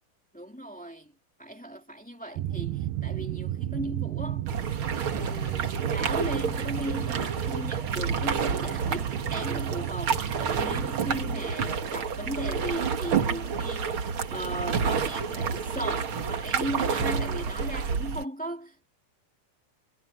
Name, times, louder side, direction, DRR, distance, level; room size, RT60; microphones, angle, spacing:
voice 1, 0.3-1.1 1.4-4.5 5.1-18.9, right 1 dB, 5° left, 1.4 m, -37 dB
sound 1, 2.4-11.4, right 14 dB, 80° right, 2.6 m, -33 dB
sound 2, 4.5-18.2, right 6 dB, 50° right, 1.8 m, -29 dB
omnidirectional pair, 4.3 m